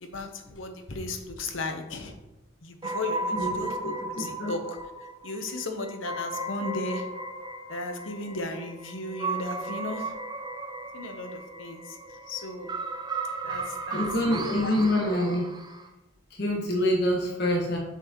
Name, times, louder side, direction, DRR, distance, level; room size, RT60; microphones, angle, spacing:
voice 1, 0.0-2.1 2.6-4.8 5.2-7.1 7.7-10.1 10.9-12.0 12.3-12.7 13.4-14.7 15.1-15.2, left 2 dB, 80° left, 6 dB, 0.9 m, -35 dB
sound 1, 2.8-15.9, right 2 dB, 20° right, 0.5 m, -35 dB
voice 2, 3.3-3.6 4.2-4.5 13.9-15.5 16.4-17.8, left 1 dB, 55° left, -2 dB, 1.6 m, -26 dB
6.7 x 6.0 x 3.0 m, 1.0 s
head